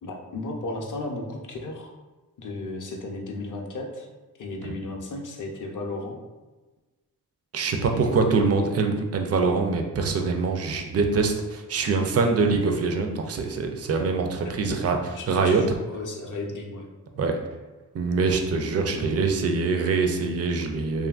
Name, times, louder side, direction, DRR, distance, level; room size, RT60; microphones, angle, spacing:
voice 1, 0.0-1.9 2.4-4.1 4.4-6.2 7.7-8.3 14.6-16.9, left 2 dB, 50° left, 2 dB, 0.6 m, -35 dB
voice 2, 7.5-15.6 17.2-17.4 17.9-21.1, right 4 dB, 40° right, 4 dB, 0.4 m, -24 dB
2.8 x 2.5 x 2.3 m, 1.2 s
cardioid pair, 55°, 40 cm